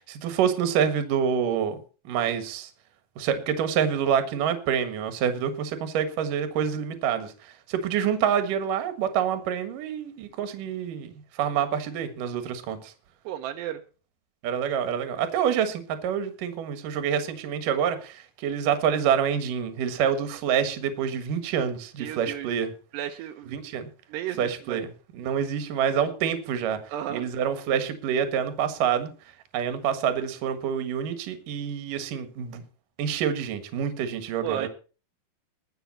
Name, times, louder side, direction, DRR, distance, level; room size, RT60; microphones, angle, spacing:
voice 1, 0.0-1.8 2.0-2.7 3.2-11.1 11.4-12.9 14.4-22.7 23.5-23.9 24.4-26.8 27.1-29.1 29.5-32.6 33.0-34.7, right 8 dB, 60° right, 10 dB, 2.9 m, -27 dB
voice 2, 13.3-13.8 22.0-22.5 22.9-23.6 24.1-24.8 26.9-27.3 34.4-34.7, right 11 dB, 80° right, 6 dB, 3.0 m, -33 dB
21.5 x 7.1 x 4.3 m, 0.35 s
omnidirectional pair, 4.9 m